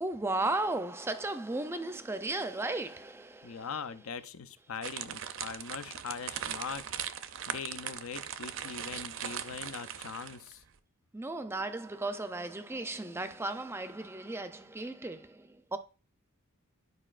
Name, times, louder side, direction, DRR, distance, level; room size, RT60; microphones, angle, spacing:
voice 1, 0.0-3.7 11.1-15.8, right 2 dB, 10° right, 0.4 m, -35 dB
voice 2, 3.4-6.8 7.5-10.6, left 6 dB, 80° left, 0.6 m, -41 dB
sound 1, 4.8-10.5, right 9 dB, 65° right, 0.5 m, -39 dB
11.0 x 4.8 x 2.5 m
head